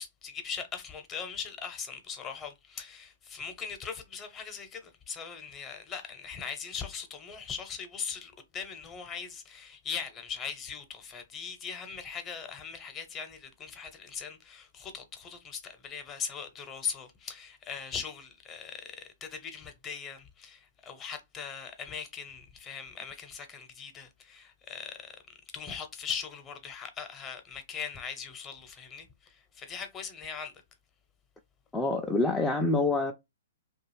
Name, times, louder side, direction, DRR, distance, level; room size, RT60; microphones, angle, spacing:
voice 1, 0.0-25.2 25.5-30.5, left 6 dB, 20° left, 0.7 m, -40 dB
voice 2, 31.7-33.1, left 2 dB, 5° left, 0.3 m, -26 dB
2.6 x 2.3 x 3.1 m
hypercardioid pair, 130°, 0 cm